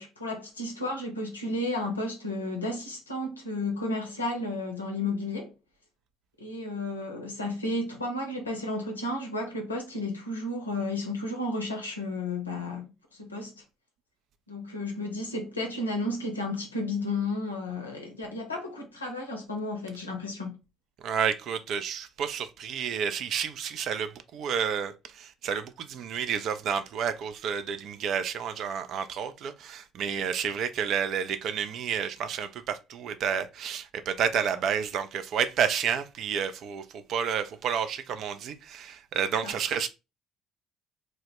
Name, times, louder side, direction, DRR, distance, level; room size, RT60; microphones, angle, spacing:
voice 1, 0.0-5.5 6.4-13.6 14.5-20.6 39.4-39.6, left 2 dB, 90° left, 0.5 m, -33 dB
voice 2, 21.0-39.9, right 7 dB, 55° right, 0.3 m, -30 dB
2.1 x 2.0 x 2.9 m
figure-of-eight pair, 55°, 0 cm